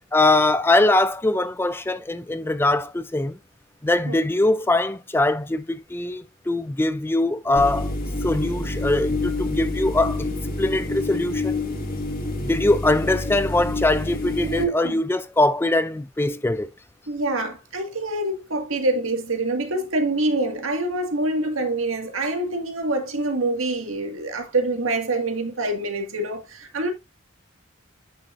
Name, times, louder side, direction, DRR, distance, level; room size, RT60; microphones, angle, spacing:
voice 1, 0.1-3.4 3.8-7.9 8.2-10.3 10.6-11.6 12.4-16.7, left 2 dB, 10° left, 0.4 m, -22 dB
sound 1, 7.6-14.6, left 2 dB, 45° left, 1.7 m, -27 dB
voice 2, 14.4-15.0 17.1-26.9, right 2 dB, 80° right, 1.9 m, -26 dB
9.1 x 6.5 x 2.5 m
head